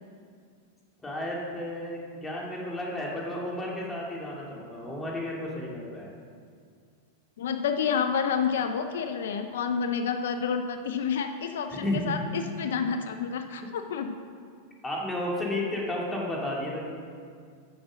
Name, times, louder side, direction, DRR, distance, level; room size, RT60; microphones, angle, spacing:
voice 1, 1.0-6.1 11.7-12.2 14.8-16.9, left 1 dB, 10° left, -3 dB, 2.6 m, -32 dB
voice 2, 7.4-14.2, left 6 dB, 80° left, 7 dB, 0.6 m, -29 dB
10.0 x 6.3 x 6.3 m, 2.2 s
hypercardioid pair, 120°, 0 cm